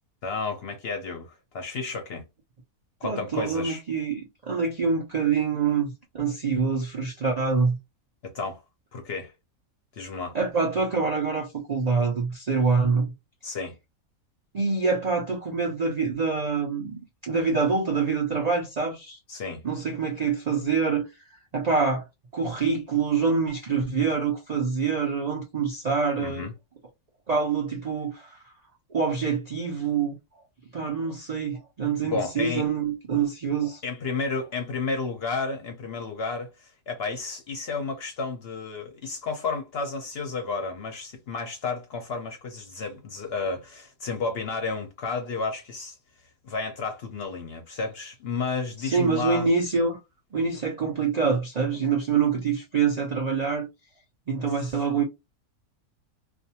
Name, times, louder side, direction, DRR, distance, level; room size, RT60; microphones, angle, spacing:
voice 1, 0.2-2.2 3.0-3.8 8.2-8.6 8.9-9.3 9.9-10.4 13.4-13.7 19.3-19.6 26.2-26.5 32.0-32.7 33.8-46.0 46.4-49.5 54.6-54.7, left 4 dB, 60° left, 0.7 m, -32 dB
voice 2, 3.0-7.8 10.3-13.1 14.5-19.2 19.6-21.0 21.5-22.1 22.3-26.5 27.3-28.3 28.9-30.1 30.7-33.8 48.8-50.0 50.3-53.7 54.3-55.0, right 5 dB, 85° right, 0.3 m, -25 dB
2.5 x 2.3 x 2.8 m
omnidirectional pair, 1.6 m